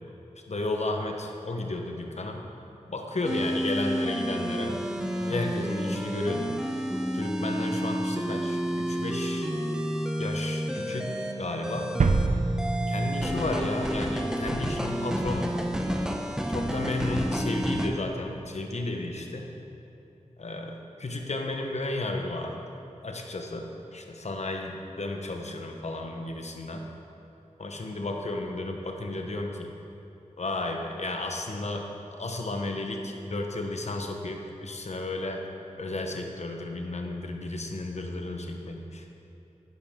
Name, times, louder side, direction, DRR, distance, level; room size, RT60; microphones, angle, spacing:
voice 1, 0.5-2.4 2.9-6.6 7.1-9.5 10.2-11.9 12.9-15.5 16.5-19.5 20.4-22.6 23.0-23.7 23.9-26.8 27.6-29.7 30.4-31.9 32.2-35.4 35.8-39.1, left 2 dB, 60° left, 3 dB, 1.0 m, -33 dB
sound 1, 3.2-17.9, equal, 5° right, 0.8 m, -30 dB
sound 2, 12.0-13.8 14.1-14.2, right 3 dB, 75° right, 0.5 m, -27 dB
10.5 x 9.7 x 3.7 m, 3.0 s
wide cardioid pair, 85°, 13 cm